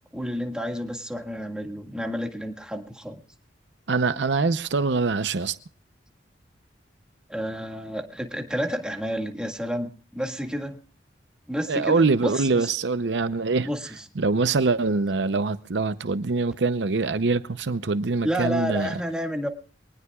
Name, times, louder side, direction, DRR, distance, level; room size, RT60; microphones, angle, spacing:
voice 1, 0.1-3.2 7.3-10.8 11.5-12.7 13.7-13.8 18.2-19.5, equal, 5° right, 1.8 m, -30 dB
voice 2, 3.9-5.6 11.7-13.7 14.2-19.0, right 4 dB, 70° right, 0.7 m, -24 dB
24.0 x 19.0 x 2.4 m
head